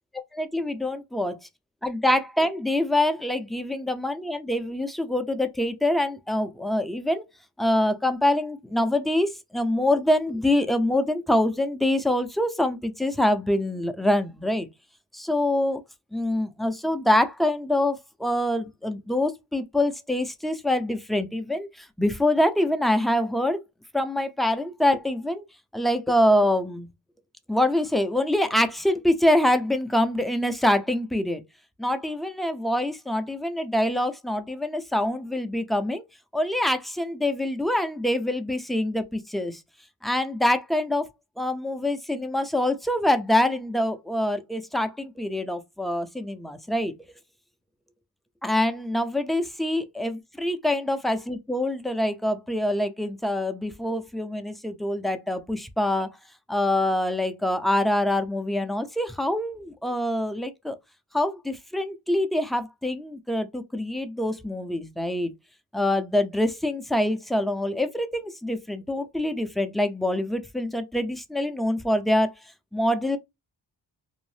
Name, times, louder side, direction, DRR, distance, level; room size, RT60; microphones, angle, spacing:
voice 1, 0.3-1.4 1.8-7.2 7.6-14.7 15.1-15.8 16.1-23.6 23.9-25.4 25.7-26.9 27.5-31.4 31.8-36.0 36.3-39.6 40.0-41.0 41.4-46.9 48.4-56.1 56.5-60.8 61.1-65.3 65.7-72.3 72.7-73.2, left 1 dB, ahead, 0.4 m, -25 dB
2.7 x 2.0 x 3.2 m
cardioid pair, 50°, 42 cm